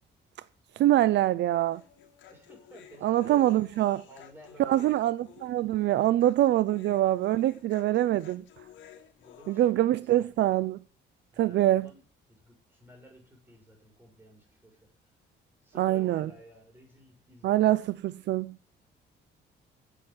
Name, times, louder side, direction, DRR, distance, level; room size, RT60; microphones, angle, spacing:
voice 1, 0.8-1.8 3.0-4.0 4.6-8.4 9.5-10.8 11.4-11.9 15.8-16.3 17.4-18.6, right 14 dB, 70° right, 0.5 m, -24 dB
Human voice, 1.7-9.7, left 9 dB, 80° left, 2.3 m, -53 dB
voice 2, 2.3-3.5 4.1-5.0 7.8-8.3 9.2-10.5 11.3-15.1 15.6-17.8, right 1 dB, 10° right, 5.9 m, -54 dB
9.9 x 7.8 x 9.6 m
cardioid pair, 170°, 19 cm